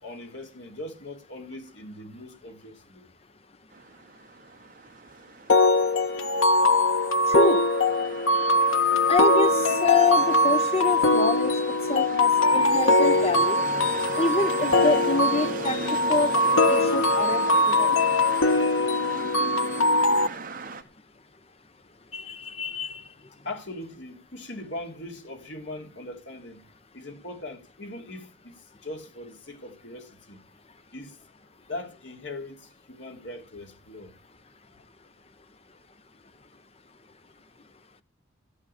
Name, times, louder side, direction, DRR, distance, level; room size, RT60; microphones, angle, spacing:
voice 1, 0.0-3.1 23.4-26.6 26.9-28.5 28.8-30.4 30.9-31.2 31.7-34.1, left 1 dB, 65° left, 3.0 m, -40 dB
sound 1, 3.7-20.8, right 3 dB, 45° right, 1.4 m, -38 dB
sound 2, 5.5-20.3, left 2 dB, 90° left, 1.2 m, -22 dB
voice 2, 7.3-7.7 9.1-13.6 14.1-15.8 16.1-18.0 22.1-23.0, left 3 dB, 30° left, 0.9 m, -27 dB
14.5 x 6.7 x 10.0 m
head